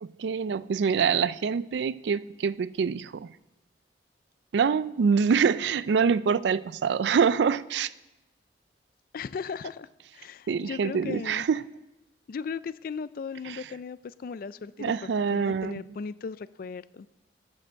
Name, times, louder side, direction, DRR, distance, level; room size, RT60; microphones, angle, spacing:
voice 1, 0.0-3.3 4.5-7.9 10.5-11.6 13.5-13.6 14.8-15.8, right 6 dB, 75° right, 0.4 m, -25 dB
voice 2, 9.1-9.9 10.1-11.5 12.3-17.1, left 5 dB, 55° left, 0.3 m, -37 dB
13.5 x 6.6 x 6.3 m
head